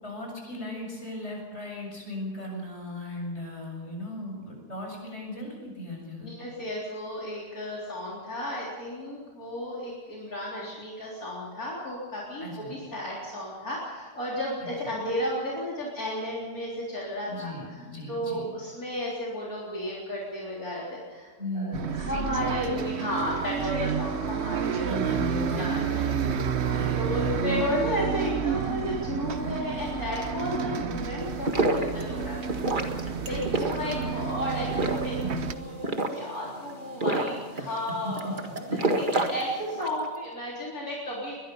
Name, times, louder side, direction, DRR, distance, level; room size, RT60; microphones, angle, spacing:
voice 1, 0.0-6.3 12.4-12.8 14.8-15.0 17.3-18.5 21.4-21.9 24.9-27.7 30.6-31.0 33.1-33.4 33.8-34.2 35.2-35.5 37.6-37.8 38.0-38.3 38.7-38.8, left 1 dB, 45° left, 0 dB, 7.2 m, -37 dB
voice 2, 6.2-24.9 25.6-26.3 26.6-26.7 26.9-32.4 33.2-38.4 39.1-41.3, left 1 dB, 70° left, -5 dB, 4.4 m, -33 dB
Bus, 21.7-35.5, right 7 dB, 50° right, 1.1 m, -30 dB
sound 1, 31.2-40.0, right 2 dB, 35° right, 1.8 m, -30 dB
22.0 x 22.0 x 5.5 m, 1.5 s
omnidirectional pair, 1.6 m